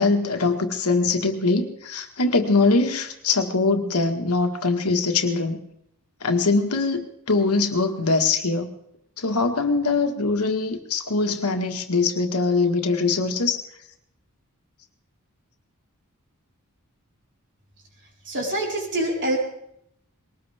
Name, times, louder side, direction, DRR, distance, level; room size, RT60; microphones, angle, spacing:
voice 1, 0.0-5.6 6.2-8.7 9.2-13.6, left 3 dB, 85° left, 5 dB, 1.8 m, -22 dB
voice 2, 18.2-19.4, right 1 dB, 55° right, -1 dB, 4.6 m, -25 dB
21.0 x 19.0 x 3.6 m, 0.74 s
head